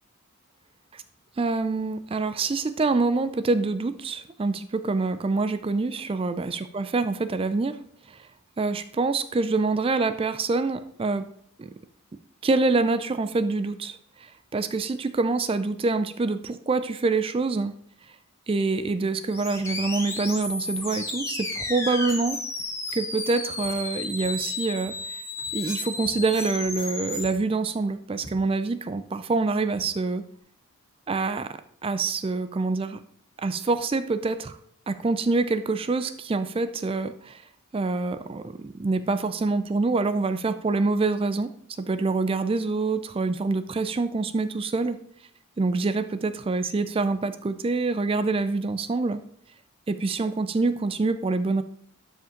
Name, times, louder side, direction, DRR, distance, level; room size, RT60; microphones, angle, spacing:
voice 1, 1.4-7.8 8.1-8.3 8.6-11.3 11.6-11.7 12.4-17.7 18.5-22.4 22.9-25.2 25.5-30.2 31.1-33.0 33.4-34.6 34.9-37.4 37.7-41.5 41.8-45.0 45.6-49.2 49.9-51.6, right 3 dB, 25° right, 11 dB, 0.3 m, -26 dB
sound 1, 19.3-27.3, left 3 dB, 15° left, 1.1 m, -33 dB
Walk footsteps, 23.6-23.9 24.2-24.5 24.8-25.1 25.4-25.7 26.0-26.9 27.2-27.5 27.8-27.9 28.2-28.7 29.2-29.4 29.7-30.0, right 1 dB, 55° right, 2.2 m, -50 dB
12.0 x 5.2 x 3.8 m, 0.67 s
head